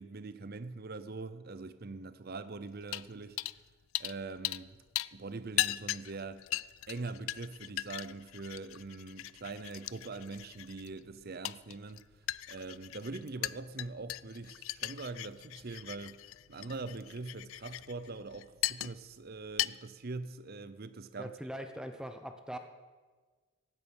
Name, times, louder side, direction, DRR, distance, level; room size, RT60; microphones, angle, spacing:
voice 1, 0.0-3.4 4.0-4.8 5.1-6.5 6.9-12.1 12.5-21.3, right 3 dB, 45° right, 0.7 m, -43 dB
sound 1, 2.9-3.1 3.4-3.6 4.0-4.7 5.0-19.2 19.5-19.7, left 16 dB, 65° left, 0.3 m, -38 dB
voice 2, 21.2-22.6, equal, 5° right, 0.7 m, -41 dB
16.0 x 8.9 x 6.4 m
head